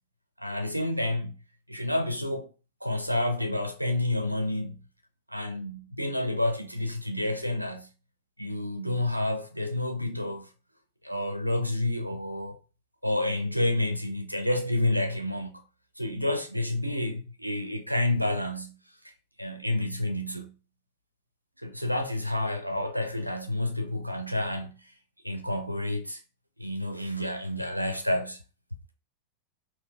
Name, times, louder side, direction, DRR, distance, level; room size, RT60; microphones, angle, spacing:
voice 1, 0.4-1.4 1.7-2.5 2.8-4.8 5.3-7.9 8.4-10.5 11.0-12.6 13.0-15.6 16.0-18.8 19.4-20.5 21.6-24.8 25.2-26.2 26.6-28.4, left 1 dB, 90° right, 0.5 m, -29 dB
3.7 x 2.7 x 2.6 m
figure-of-eight pair, 90°, 0 cm